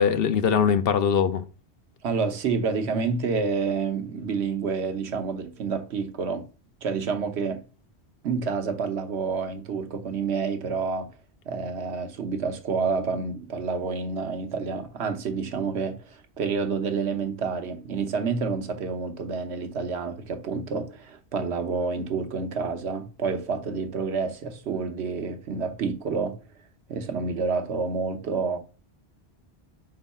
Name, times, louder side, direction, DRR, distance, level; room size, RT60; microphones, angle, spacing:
voice 1, 0.0-1.4, left 7 dB, 65° left, 0.8 m, -21 dB
voice 2, 2.0-6.5 6.8-7.6 8.2-11.1 11.5-26.4 26.9-28.6, right 5 dB, 80° right, 1.1 m, -28 dB
4.5 x 3.9 x 5.4 m
omnidirectional pair, 1.1 m